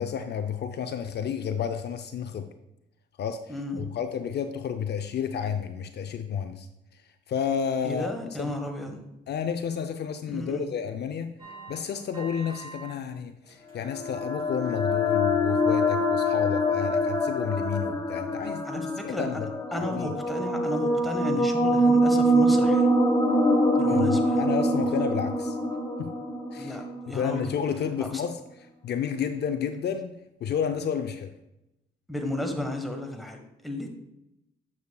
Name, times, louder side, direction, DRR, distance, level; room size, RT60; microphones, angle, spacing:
voice 1, 0.0-2.5 3.2-6.7 6.9-7.0 7.3-8.5 9.3-11.4 11.7-19.5 19.8-20.1 23.9-25.6 26.0-26.1 26.5-26.8 27.1-31.3, left 7 dB, 55° left, 8 dB, 0.5 m, -31 dB
voice 2, 3.5-3.9 7.8-9.0 10.3-10.7 18.6-19.4 19.7-22.9 23.7-24.4 26.6-27.5 28.1-28.2 32.1-33.9, left 1 dB, ahead, 3 dB, 1.3 m, -33 dB
sound 1, 11.4-12.9 13.3-14.0 14.3-14.6 15.1-15.2, right 3 dB, 25° right, 2.9 m, -45 dB
sound 2, 13.8-27.4, equal, 15° left, 1.6 m, -24 dB
9.3 x 7.0 x 2.3 m, 0.89 s
cardioid pair, 90°, 20 cm